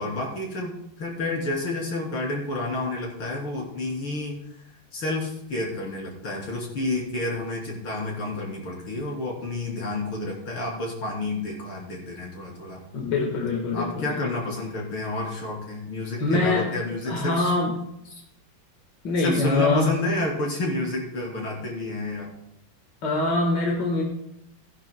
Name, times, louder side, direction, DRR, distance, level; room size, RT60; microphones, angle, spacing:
voice 1, 0.0-4.4 4.9-12.8 13.7-17.5 18.1-18.2 19.2-22.3, left 2 dB, 75° left, -2 dB, 3.9 m, -30 dB
voice 2, 12.9-14.3 16.2-16.7 17.1-17.7 19.0-19.9 23.0-24.0, left 2 dB, 55° left, 0 dB, 2.1 m, -24 dB
17.5 x 10.5 x 2.2 m, 0.80 s
omnidirectional pair, 2.3 m